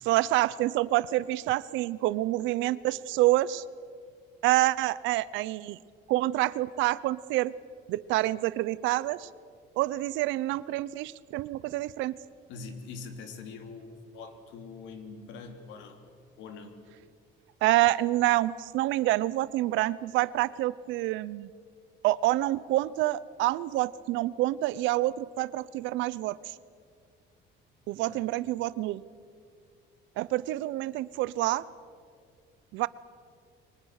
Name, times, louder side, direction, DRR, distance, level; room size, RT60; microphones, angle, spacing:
voice 1, 0.0-3.6 4.4-5.8 6.1-7.5 7.9-9.3 9.8-12.1 17.6-21.5 22.0-26.5 27.9-29.0 30.2-31.6 32.7-32.9, right 16 dB, 80° right, 19 dB, 0.8 m, -27 dB
voice 2, 12.5-16.0 16.4-16.8 27.9-28.3, left 4 dB, 75° left, 6 dB, 3.1 m, -44 dB
29.0 x 24.0 x 6.6 m, 2.1 s
cardioid pair, 155°, 19 cm